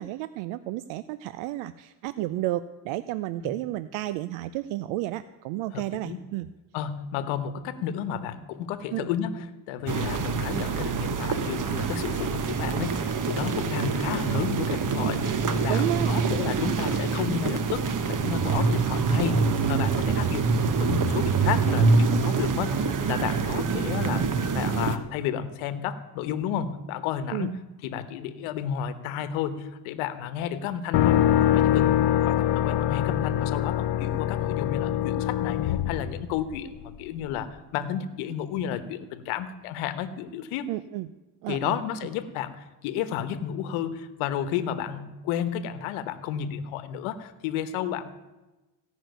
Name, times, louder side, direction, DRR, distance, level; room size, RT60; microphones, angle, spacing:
voice 1, 0.0-6.5 8.9-9.1 15.7-16.2 27.3-27.5 40.7-41.1 41.4-41.8, right 15 dB, 85° right, 14 dB, 0.6 m, -31 dB
voice 2, 5.7-6.2 6.7-24.2 24.5-32.0 32.2-40.7 41.5-48.1, left 9 dB, 90° left, 12 dB, 1.2 m, -32 dB
sound 1, 9.9-25.0, right 5 dB, 40° right, 1.3 m, -25 dB
sound 2, 30.9-36.8, left 11 dB, 55° left, 0.8 m, -24 dB
16.5 x 6.3 x 9.2 m, 1.1 s
cardioid pair, 95°, 48 cm